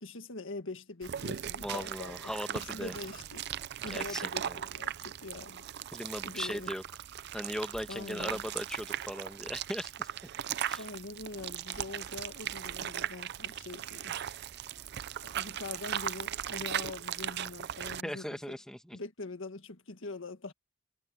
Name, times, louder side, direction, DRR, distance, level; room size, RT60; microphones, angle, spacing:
voice 1, 0.0-3.5 3.8-5.7 6.2-6.7 7.9-8.4 10.8-14.2 15.2-18.6 18.9-20.5, left 3 dB, 75° left, 1.7 m, -43 dB
sound 1, 1.0-18.0, right 10 dB, 55° right, 0.5 m, -38 dB
voice 2, 1.6-3.0 3.9-4.6 5.9-6.8 7.3-10.1 10.6-10.8 18.0-19.0, equal, 5° left, 1.5 m, -38 dB
head